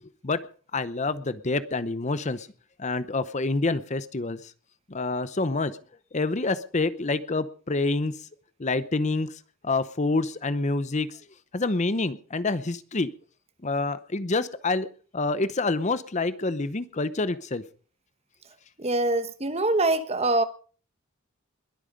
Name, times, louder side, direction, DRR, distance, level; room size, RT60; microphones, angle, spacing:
voice 1, 0.7-2.5 2.8-4.5 4.9-5.7 6.1-8.1 8.6-11.2 11.5-13.1 13.6-14.9 15.1-17.6, left 3 dB, 35° left, 0.7 m, -27 dB
voice 2, 18.8-20.4, right 2 dB, 30° right, 1.1 m, -24 dB
21.5 x 8.9 x 5.3 m
head